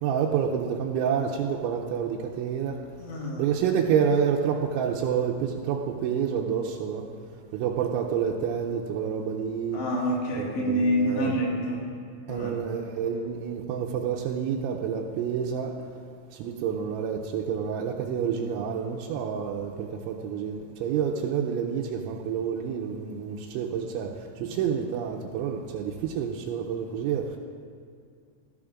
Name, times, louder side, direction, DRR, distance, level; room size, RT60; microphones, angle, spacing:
voice 1, 0.0-2.8 3.4-7.1 7.5-9.8 10.4-11.4 12.3-15.9 16.3-27.4, right 7 dB, 90° right, -2 dB, 3.0 m, -28 dB
voice 2, 3.0-3.5 9.7-11.9 12.3-12.5, equal, 70° left, -3 dB, 4.0 m, -27 dB
19.0 x 13.5 x 2.5 m, 2.3 s
omnidirectional pair, 5.4 m